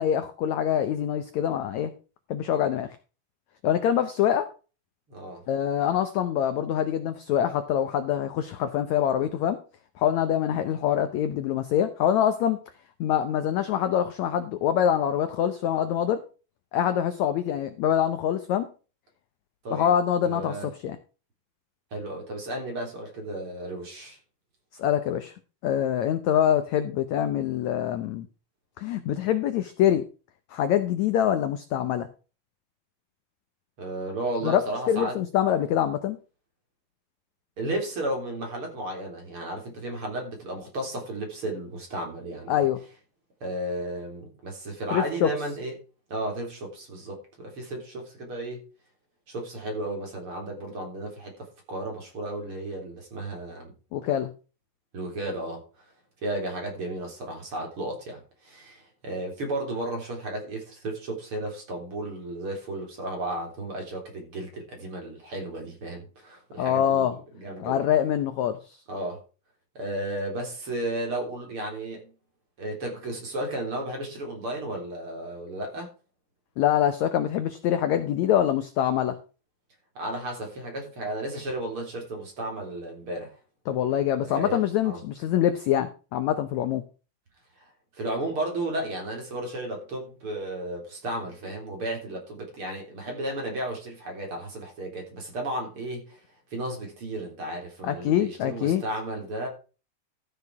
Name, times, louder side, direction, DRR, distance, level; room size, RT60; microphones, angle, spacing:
voice 1, 0.0-1.9 2.3-3.0 3.6-4.5 5.5-9.6 10.0-12.6 13.0-16.2 16.7-18.7 19.7-21.0 24.8-25.3 25.6-28.3 28.8-30.0 30.5-32.1 34.4-36.2 42.5-42.8 44.9-45.3 53.9-54.3 66.6-67.2 67.6-68.8 76.6-79.2 83.7-86.8 97.8-98.8, left 10 dB, 80° left, 1.6 m, -25 dB
voice 2, 5.1-5.4 19.6-19.9 20.2-20.7 21.9-24.2 33.8-35.2 37.6-42.6 43.4-45.7 46.1-48.6 49.3-53.7 54.9-55.6 56.2-67.1 67.3-67.8 68.9-69.2 69.8-72.1 72.6-75.9 80.0-83.3 84.3-85.0 87.9-96.2 96.5-99.5, right 1 dB, 35° right, 4.2 m, -33 dB
14.0 x 6.8 x 4.7 m
omnidirectional pair, 4.3 m